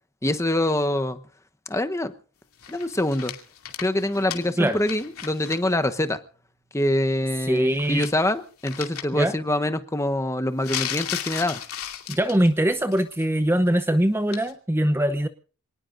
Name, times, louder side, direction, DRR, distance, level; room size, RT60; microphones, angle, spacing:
voice 1, 0.2-1.2 1.7-2.1 2.7-3.3 3.8-6.2 6.7-11.6, left 1 dB, 15° left, 9 dB, 0.9 m, -25 dB
sound 1, 2.6-5.6 5.9-6.0 7.6-8.3 8.6-9.0 10.6-12.5 12.9-13.2 14.3-14.5, left 10 dB, 75° left, 2.6 m, -35 dB
sound 2, 6.2-7.1, right 2 dB, 50° right, 7.0 m, -55 dB
voice 2, 7.5-8.1 9.1-9.4 12.1-15.3, right 1 dB, 10° right, 10 dB, 0.7 m, -22 dB
27.0 x 19.5 x 2.6 m, 0.40 s
head